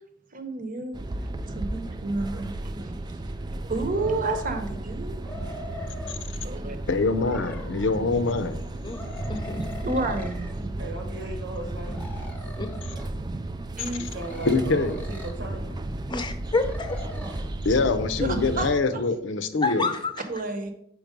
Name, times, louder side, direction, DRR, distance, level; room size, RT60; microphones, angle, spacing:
voice 1, 0.3-1.0 1.5-2.5 2.8-2.9 3.7-5.2 5.9-6.8 9.8-10.5 13.8-14.0 18.2-19.0 20.3-20.7, right 2 dB, 50° right, 7 dB, 0.9 m, -30 dB
sound 1, 0.9-18.8, right 2 dB, 25° right, 0.3 m, -34 dB
sound 2, 3.9-4.7 5.1-6.2 7.1-8.1 8.9-10.5 11.8-13.1 14.1-15.4 16.6-17.5, left 2 dB, 10° left, 1.0 m, -42 dB
voice 2, 6.9-8.6 14.5-14.9 17.6-19.9, left 3 dB, 80° left, 10 dB, 0.6 m, -24 dB
voice 3, 9.3-9.9 12.6-12.7 16.1-17.0 19.6-20.1, left 3 dB, 25° left, 7 dB, 0.7 m, -28 dB
voice 4, 10.8-12.1 14.0-15.8, right 2 dB, 90° right, 4 dB, 1.5 m, -37 dB
5.1 x 4.6 x 5.2 m, 0.75 s
head